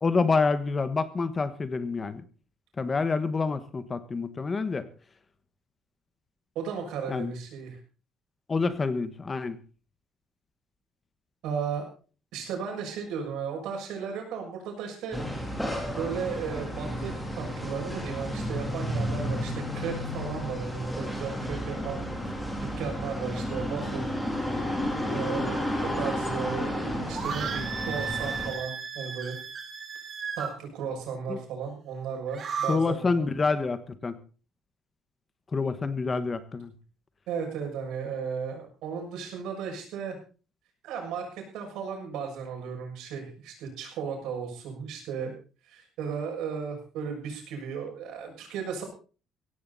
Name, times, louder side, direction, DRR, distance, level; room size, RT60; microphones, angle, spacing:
voice 1, 0.0-2.2 2.8-4.9 7.1-7.3 8.5-9.6 31.3-31.4 32.7-34.2 35.5-36.7, left 4 dB, 20° left, 12 dB, 1.3 m, -27 dB
voice 2, 6.5-7.8 11.4-11.8 12.3-15.5 15.9-24.1 25.1-29.4 30.4-33.3 37.3-40.2 40.8-45.3 45.7-48.8, right 6 dB, 80° right, 2 dB, 6.7 m, -35 dB
sound 1, 15.1-28.5, equal, 5° left, 3.4 m, -32 dB
sound 2, 27.1-30.5 32.2-32.8, right 6 dB, 35° right, 3.3 m, -34 dB
16.5 x 15.5 x 4.2 m, 0.37 s
cardioid pair, 175°, 0 cm